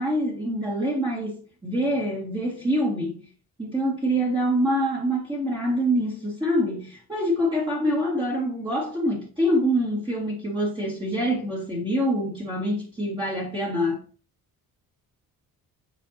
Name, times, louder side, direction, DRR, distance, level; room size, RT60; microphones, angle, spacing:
voice 1, 0.0-3.3 3.6-14.0, equal, 15° right, 2.1 m, -25 dB
8.0 x 4.6 x 2.8 m
cardioid pair, 105°, 36 cm